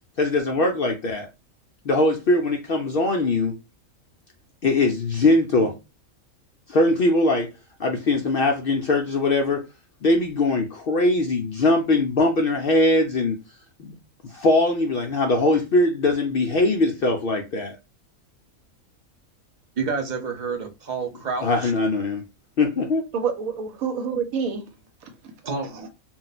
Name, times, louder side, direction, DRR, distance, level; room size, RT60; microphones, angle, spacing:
voice 1, 0.2-1.3 1.8-3.5 4.6-5.7 6.7-7.5 7.8-9.7 10.0-13.4 13.8-13.9 14.2-17.8 21.4-22.2 22.6-23.0, left 2 dB, 65° left, 0.5 m, -21 dB
voice 2, 19.8-21.7 25.4-25.7, right 4 dB, 50° right, 0.6 m, -29 dB
voice 3, 23.1-24.7 25.0-25.3 25.6-25.9, right 6 dB, 90° right, 1.2 m, -28 dB
2.5 x 2.1 x 3.9 m
omnidirectional pair, 1.4 m